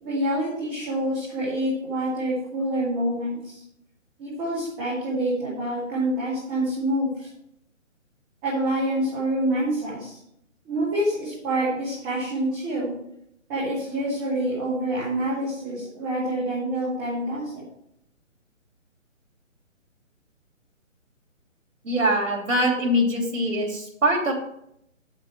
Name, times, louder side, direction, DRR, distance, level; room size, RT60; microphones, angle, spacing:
voice 1, 0.0-3.6 4.2-7.3 8.4-10.2 10.6-12.9 13.5-17.6, right 1 dB, 5° right, -8 dB, 0.8 m, -27 dB
voice 2, 21.8-24.3, equal, 80° right, -2 dB, 3.4 m, -23 dB
7.4 x 6.5 x 7.4 m, 0.74 s
hypercardioid pair, 160°, 39 cm